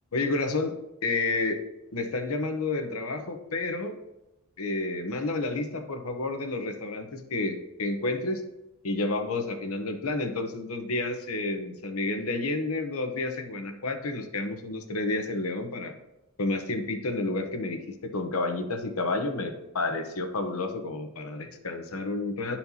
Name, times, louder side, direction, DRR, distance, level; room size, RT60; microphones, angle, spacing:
voice 1, 0.1-1.6 1.9-3.9 4.6-8.4 8.8-15.9 16.4-22.6, left 2 dB, 80° left, 5 dB, 0.9 m, -30 dB
12.0 x 4.3 x 2.8 m, 0.96 s
head